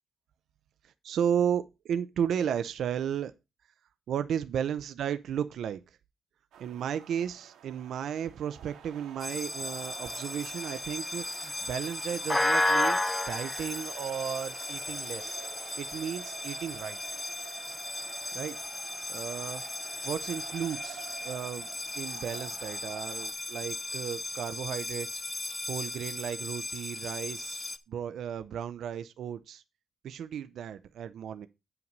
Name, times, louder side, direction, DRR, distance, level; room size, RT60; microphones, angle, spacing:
voice 1, 0.8-3.3 4.1-5.8 6.6-15.4 15.8-17.0 18.3-18.6 19.1-19.6 20.0-21.7 21.9-25.2 25.7-29.6 30.0-31.5, right 8 dB, 60° right, 0.6 m, -34 dB
sound 1, 6.5-23.3, right 9 dB, 90° right, 1.7 m, -49 dB
sound 2, 9.2-27.8, left 2 dB, 10° left, 0.5 m, -34 dB
9.3 x 5.8 x 5.3 m
cardioid pair, 175°, 0 cm